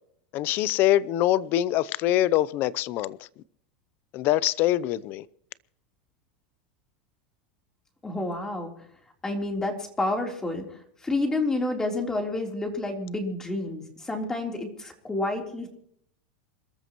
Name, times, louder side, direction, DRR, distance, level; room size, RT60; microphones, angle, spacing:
voice 1, 0.3-3.2 4.1-5.3, left 14 dB, 45° left, 0.7 m, -24 dB
voice 2, 8.0-8.7 9.2-10.6 11.0-15.7, left 2 dB, 10° left, 3.6 m, -29 dB
27.5 x 13.5 x 3.1 m
supercardioid pair, 135°, 5 cm